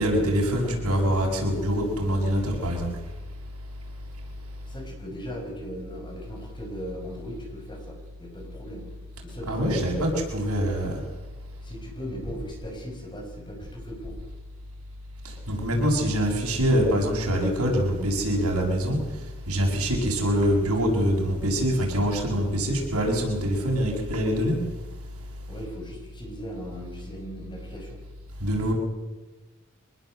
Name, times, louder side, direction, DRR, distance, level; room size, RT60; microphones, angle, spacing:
voice 1, 0.0-2.9 9.5-10.9 15.5-19.0 19.5-24.5 28.4-28.7, equal, 85° right, 1 dB, 7.1 m, -24 dB
voice 2, 0.6-1.0 4.6-8.9 9.2-9.9 10.3-10.7 11.6-14.2 25.5-28.0, equal, 20° left, 2 dB, 6.0 m, -38 dB
25.0 x 20.0 x 8.0 m, 1.2 s
head